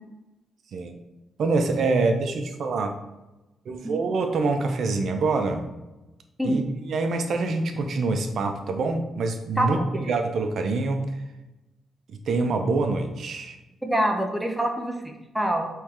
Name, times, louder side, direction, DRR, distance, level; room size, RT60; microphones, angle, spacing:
voice 1, 1.4-2.9 3.7-5.6 6.4-11.2 12.1-13.6, right 3 dB, 60° right, 6 dB, 0.6 m, -25 dB
voice 2, 9.6-9.9 13.8-15.7, right 1 dB, ahead, 2 dB, 0.6 m, -25 dB
4.5 x 3.2 x 3.6 m, 1.0 s
cardioid pair, 115°, 0 cm